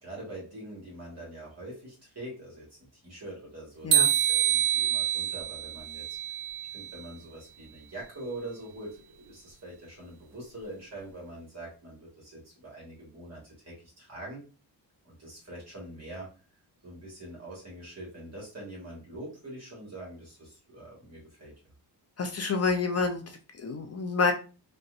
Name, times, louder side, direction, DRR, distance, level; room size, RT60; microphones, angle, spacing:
voice 1, 0.0-2.7 2.9-6.2 6.7-14.4 15.0-16.3 16.8-21.5, right 1 dB, 40° right, -5 dB, 1.5 m, -44 dB
sound 1, 3.9-7.0, right 11 dB, 60° right, 0.5 m, -26 dB
voice 2, 22.2-24.3, left 4 dB, 40° left, 5 dB, 0.5 m, -28 dB
4.1 x 2.2 x 2.5 m, 0.35 s
cardioid pair, 100°, 41 cm